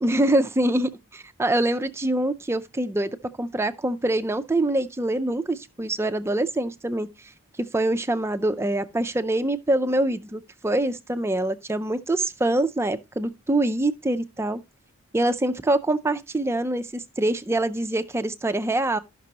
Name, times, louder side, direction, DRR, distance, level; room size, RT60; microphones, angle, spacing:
voice 1, 0.0-3.1 3.4-7.1 7.6-14.6 15.1-19.0, right 1 dB, 10° right, 0.4 m, -24 dB
12.0 x 6.0 x 2.8 m
head